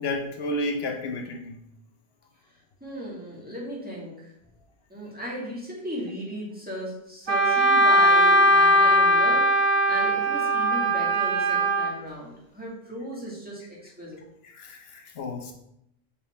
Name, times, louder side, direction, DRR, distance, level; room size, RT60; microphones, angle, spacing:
voice 1, 0.0-1.6 14.5-15.5, left 1 dB, 75° left, 3 dB, 0.9 m, -31 dB
voice 2, 2.8-4.3 4.9-14.2, equal, 10° right, -6 dB, 1.9 m, -36 dB
Wind instrument woodwind instrument, 7.3-11.9, equal, 25° right, 1.9 m, -20 dB
5.6 x 4.2 x 4.2 m, 0.79 s
omnidirectional pair, 1.1 m